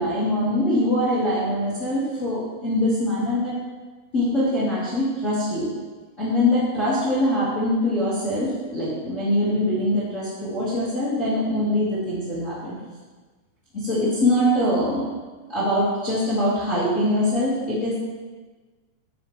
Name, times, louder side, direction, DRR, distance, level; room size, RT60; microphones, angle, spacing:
voice 1, 0.0-3.5 4.1-5.7 6.2-12.7 13.7-15.1 15.5-17.9, left 1 dB, 75° left, -10 dB, 0.7 m, -23 dB
12.0 x 7.3 x 3.3 m, 1.4 s
omnidirectional pair, 5.6 m